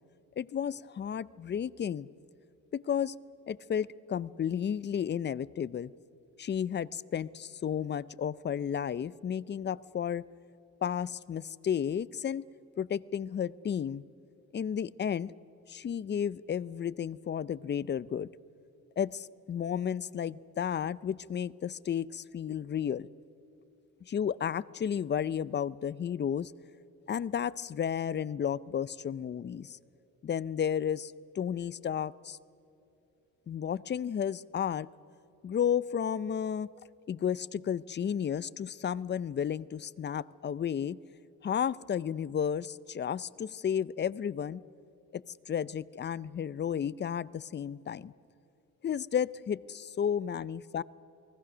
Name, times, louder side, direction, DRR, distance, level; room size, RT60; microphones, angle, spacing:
voice 1, 0.4-2.1 2.7-3.1 3.5-5.9 6.4-10.2 10.8-12.5 12.8-14.0 14.5-15.3 15.7-18.3 19.0-23.1 24.1-26.5 27.1-29.8 30.2-32.4 33.5-34.9 35.4-36.7 37.1-41.0 41.4-44.6 45.1-48.1 48.8-50.8, left 8 dB, 35° left, 20 dB, 0.5 m, -32 dB
29.5 x 19.5 x 6.2 m, 2.8 s
cardioid pair, 90°, 30 cm